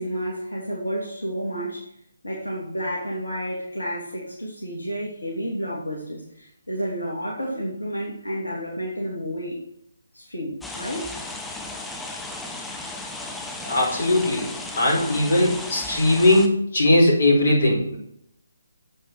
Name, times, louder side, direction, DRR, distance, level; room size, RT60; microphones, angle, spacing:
voice 1, 0.0-1.9 2.2-9.6 10.1-11.1, equal, 75° left, -3 dB, 2.9 m, -30 dB
sound 1, 10.6-16.5, left 2 dB, 5° left, 0.9 m, -35 dB
voice 2, 13.6-18.0, left 1 dB, 50° left, -1 dB, 4.6 m, -19 dB
9.4 x 8.1 x 4.8 m, 0.76 s
figure-of-eight pair, 145°, 0 cm